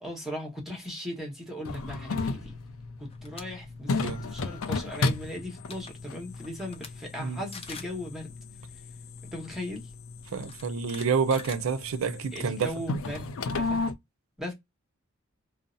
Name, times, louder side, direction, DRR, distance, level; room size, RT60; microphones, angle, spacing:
voice 1, 0.0-2.6 3.0-8.3 9.3-9.9 12.3-13.8 14.4-14.5, equal, ahead, 1.0 m, -38 dB
sound 1, 1.7-13.9, left 3 dB, 90° left, 0.4 m, -34 dB
sound 2, 3.1-3.4 3.8-4.1 5.3-5.4 5.6-5.9 6.4-6.9 7.2-7.3 7.5-8.0 9.2-9.3 10.3-12.2, left 5 dB, 30° left, 0.5 m, -44 dB
voice 2, 10.3-12.7, right 6 dB, 80° right, 0.4 m, -28 dB
2.6 x 2.0 x 2.4 m
head